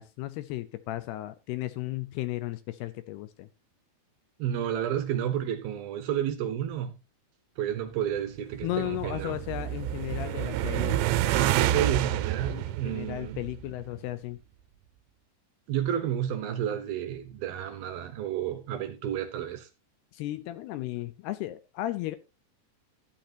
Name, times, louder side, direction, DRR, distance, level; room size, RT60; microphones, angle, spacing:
voice 1, 0.0-3.5 8.6-11.0 12.5-14.4 20.1-22.2, left 16 dB, 80° left, 2.6 m, -35 dB
voice 2, 4.4-7.0 7.6-9.4 11.3-13.4 15.7-19.7, right 10 dB, 70° right, 2.7 m, -31 dB
sound 1, 8.4-13.8, right 13 dB, 85° right, 2.9 m, -29 dB
13.0 x 10.5 x 2.8 m
omnidirectional pair, 5.0 m